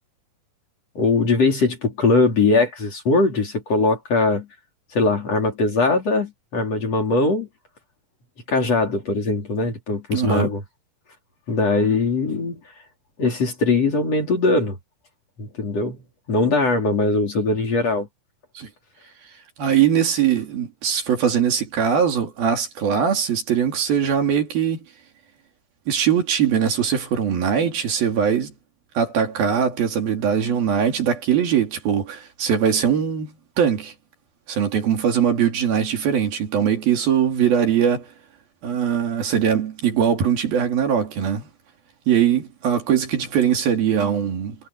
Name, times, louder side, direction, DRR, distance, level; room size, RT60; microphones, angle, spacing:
voice 1, 0.9-4.5 4.9-7.5 8.5-10.6 11.5-12.6 13.2-14.8 15.4-16.0 16.3-18.1, left 3 dB, 40° left, 4.8 m, -21 dB
voice 2, 10.1-10.5 18.6-18.7 19.6-24.8 25.9-28.5 28.9-33.9 34.5-38.1 38.6-41.5 42.1-44.6, right 8 dB, 65° right, 4.5 m, -21 dB
omnidirectional pair, 4.7 m